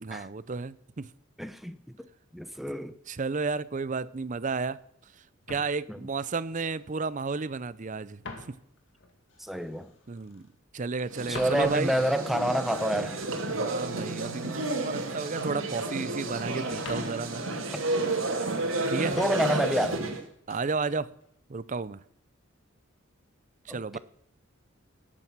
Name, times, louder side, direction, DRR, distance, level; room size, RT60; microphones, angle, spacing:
voice 1, 0.0-1.1 3.1-4.8 5.5-8.2 10.1-10.5 10.7-11.9 13.5-17.4 18.9-19.2 20.5-21.1 21.5-22.0 23.7-24.0, right 4 dB, 40° right, 0.5 m, -32 dB
voice 2, 1.4-1.8 2.3-2.9 5.9-6.0 9.4-9.9 11.3-13.3 17.7-17.8 19.1-20.0 23.7-24.0, equal, ahead, 0.7 m, -28 dB
sound 1, 5.4-7.5 7.8-10.6 10.9-15.1 15.4-16.3 16.7-18.5 18.9-19.8 20.0-20.7 21.2-21.5, left 3 dB, 60° left, 2.1 m, -48 dB
sound 2, 11.1-20.2, right 2 dB, 70° right, 2.3 m, -31 dB
18.0 x 8.8 x 6.1 m
head